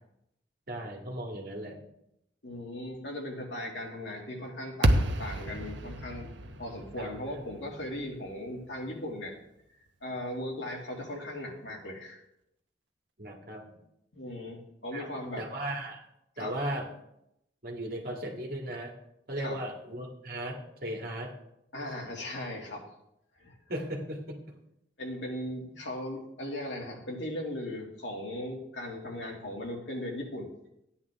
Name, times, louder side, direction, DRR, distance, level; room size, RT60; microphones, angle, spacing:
voice 1, 0.7-1.8 7.0-7.2 13.2-13.6 14.9-15.1 15.4-16.0 16.4-16.9 17.6-18.9 19.3-21.3 23.7-24.4, right 1 dB, 55° right, 0 dB, 2.0 m, -36 dB
voice 2, 2.4-9.4 10.0-12.2 14.1-15.5 16.4-16.5 19.3-19.6 21.7-22.8 23.4-23.5 25.0-30.5, left 1 dB, 75° left, -1 dB, 2.5 m, -38 dB
sound 1, 4.8-9.1, right 1 dB, 80° right, 0.9 m, -31 dB
13.5 x 9.8 x 3.6 m, 0.81 s
head